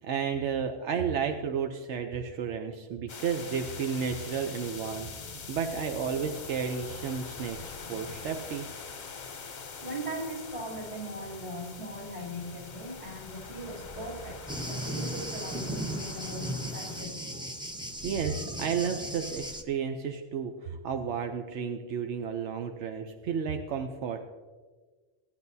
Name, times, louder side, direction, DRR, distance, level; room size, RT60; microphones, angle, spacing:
voice 1, 0.0-8.7 18.0-24.2, right 6 dB, 85° right, 5 dB, 1.0 m, -32 dB
sound 1, 3.1-17.0, left 5 dB, 45° left, 0.8 m, -43 dB
voice 2, 9.8-17.2, right 1 dB, 35° right, -5 dB, 3.3 m, -39 dB
Thunder, 14.5-19.6, right 1 dB, 5° right, 0.6 m, -36 dB
17.0 x 9.9 x 2.7 m, 1.4 s
omnidirectional pair, 1.2 m